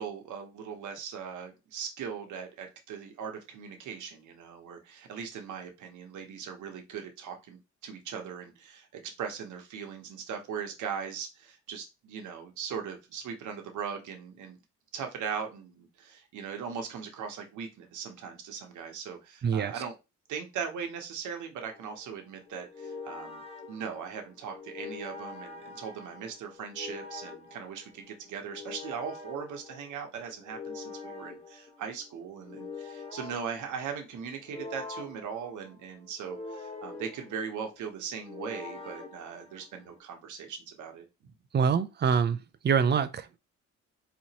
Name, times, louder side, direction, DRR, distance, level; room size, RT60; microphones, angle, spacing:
voice 1, 0.0-14.6 14.9-19.9 20.3-23.4 23.7-41.1, right 7 dB, 80° right, 1.1 m, -39 dB
voice 2, 19.4-19.7 41.5-42.4 42.6-43.4, right 6 dB, 35° right, 0.5 m, -25 dB
sound 1, 21.6-40.0, left 4 dB, 20° left, 1.0 m, -45 dB
4.2 x 3.0 x 2.9 m
cardioid pair, 90°, 30 cm